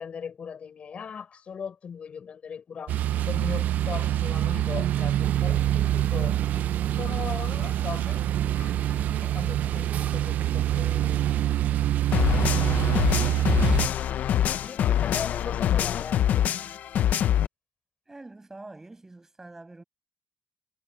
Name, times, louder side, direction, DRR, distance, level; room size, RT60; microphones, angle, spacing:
voice 1, 0.0-11.2 12.4-13.5 14.6-16.5, left 7 dB, 50° left, 4.8 m, -39 dB
sound 1, 2.9-13.9, right 12 dB, 90° right, 0.4 m, -25 dB
sound 2, 5.2-11.4, right 9 dB, 75° right, 3.0 m, -44 dB
sound 3, 12.1-17.5, left 10 dB, 85° left, 0.7 m, -24 dB
voice 2, 18.1-19.8, right 2 dB, 15° right, 7.0 m, -45 dB
cardioid pair, 125°, 3 cm